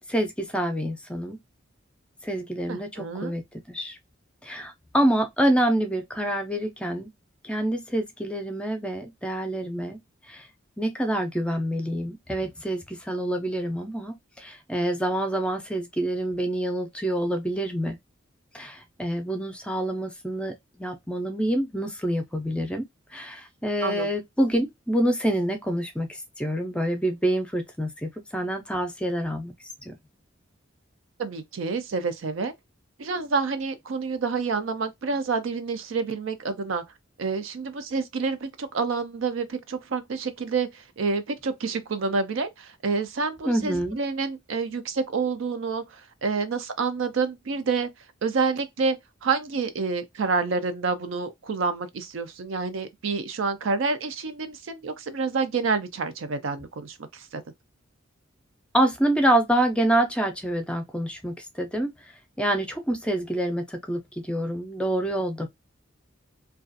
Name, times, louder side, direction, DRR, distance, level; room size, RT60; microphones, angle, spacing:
voice 1, 0.1-1.4 2.2-3.4 3.7-4.0 4.4-7.1 7.4-10.0 10.3-10.4 10.8-18.0 18.5-22.8 23.1-26.1 26.4-29.5 29.9-30.0 43.5-44.0 58.7-61.9 62.4-64.0 64.3-65.5, right 1 dB, 5° left, 0.5 m, -26 dB
voice 2, 2.7-3.3 23.8-24.1 31.2-32.5 33.0-36.8 37.2-47.9 48.2-57.4, right 4 dB, 75° right, 0.5 m, -28 dB
2.3 x 2.3 x 2.5 m
head